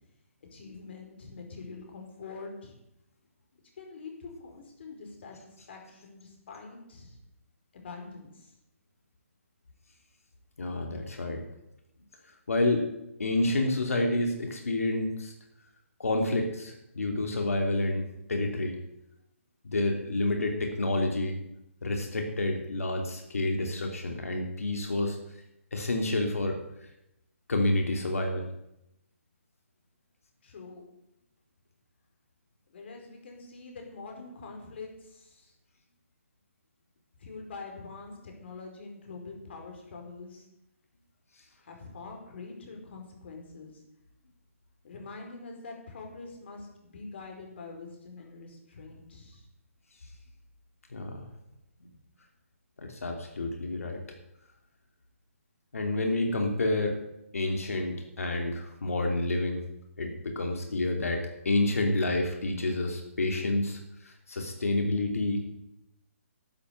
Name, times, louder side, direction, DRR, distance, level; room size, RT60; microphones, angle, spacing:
voice 1, 0.5-2.7 3.8-7.2 7.7-8.5 30.4-30.8 32.7-35.5 37.2-40.5 41.6-43.8 44.8-49.5, left 4 dB, 50° left, 2 dB, 4.8 m, -45 dB
voice 2, 10.6-11.4 12.5-12.9 13.2-15.3 16.0-18.8 19.7-21.4 21.8-25.2 25.7-26.9 27.5-28.5 50.9-51.3 52.8-54.0 55.7-57.0 57.3-59.6 60.0-65.5, left 2 dB, 85° left, 3 dB, 2.9 m, -29 dB
12.5 x 8.7 x 8.2 m, 0.85 s
hypercardioid pair, 160°, 8 cm